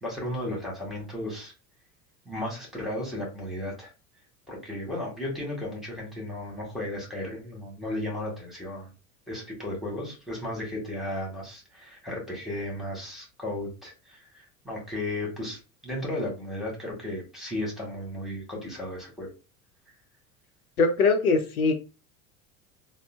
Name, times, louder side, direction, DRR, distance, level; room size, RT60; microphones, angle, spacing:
voice 1, 0.0-1.5 2.2-3.9 4.5-8.9 9.3-14.3 14.6-19.3, left 1 dB, ahead, -2 dB, 1.7 m, -34 dB
voice 2, 20.8-21.7, left 4 dB, 90° left, 5 dB, 0.6 m, -21 dB
3.6 x 2.0 x 2.3 m, 0.30 s
hypercardioid pair, 75°, 43 cm